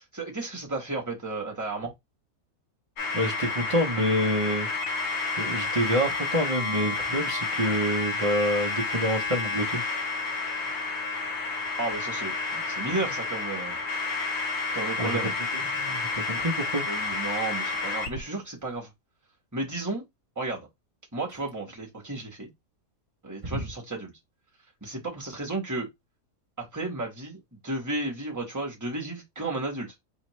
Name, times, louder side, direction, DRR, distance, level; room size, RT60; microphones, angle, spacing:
voice 1, 0.0-1.9 11.8-13.8 14.7-15.3 16.9-18.9 19.5-20.0 20.4-20.7 21.1-22.5 23.2-24.1 24.8-25.9 26.6-29.9, right 2 dB, 15° right, 1.2 m, -33 dB
sound 1, 3.0-18.2, left 3 dB, 50° left, 1.1 m, -30 dB
voice 2, 3.1-4.7 5.4-9.8 13.0-13.1 15.0-15.2 15.5-16.9 23.4-23.7, equal, 35° right, 0.5 m, -27 dB
4.1 x 2.8 x 3.1 m
omnidirectional pair, 1.6 m